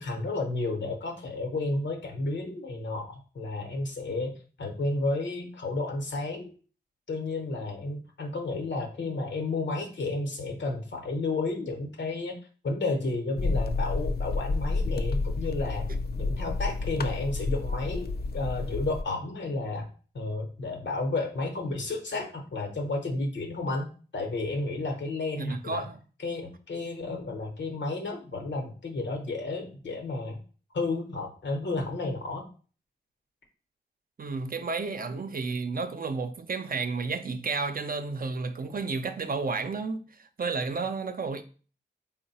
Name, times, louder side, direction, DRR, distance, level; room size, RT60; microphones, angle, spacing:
voice 1, 0.0-4.3 4.6-6.5 7.1-12.4 12.6-15.9 16.2-19.9 20.1-25.8 26.2-30.4 30.7-32.5, left 2 dB, 85° left, 0.9 m, -32 dB
sound 1, 13.4-19.0, left 3 dB, 60° left, 0.4 m, -30 dB
voice 2, 25.4-26.0 34.2-41.4, right 4 dB, 50° right, 0.5 m, -32 dB
3.7 x 2.1 x 4.1 m
cardioid pair, 40°, 18 cm